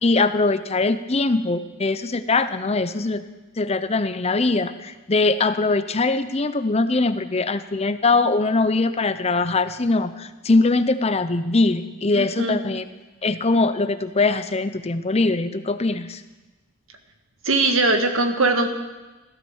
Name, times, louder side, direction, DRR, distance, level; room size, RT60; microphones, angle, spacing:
voice 1, 0.0-3.2 3.6-12.8 13.2-16.2, left 3 dB, 30° left, 11 dB, 0.7 m, -22 dB
voice 2, 12.1-12.6 17.4-18.7, right 2 dB, 75° right, 6 dB, 1.8 m, -20 dB
15.5 x 12.5 x 7.2 m, 1.2 s
head